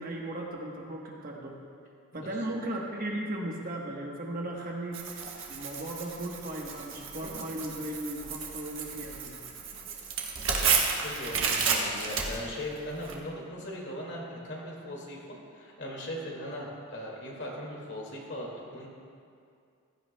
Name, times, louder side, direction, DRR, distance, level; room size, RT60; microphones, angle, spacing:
voice 1, 0.0-1.5 2.1-5.0 5.5-9.4, right 1 dB, 40° right, -1 dB, 1.2 m, -36 dB
Tearing, 4.9-13.1, right 5 dB, 60° right, 1.3 m, -32 dB
voice 2, 10.6-18.9, left 1 dB, 55° left, -3 dB, 2.1 m, -39 dB
15.5 x 12.5 x 2.2 m, 2.3 s
head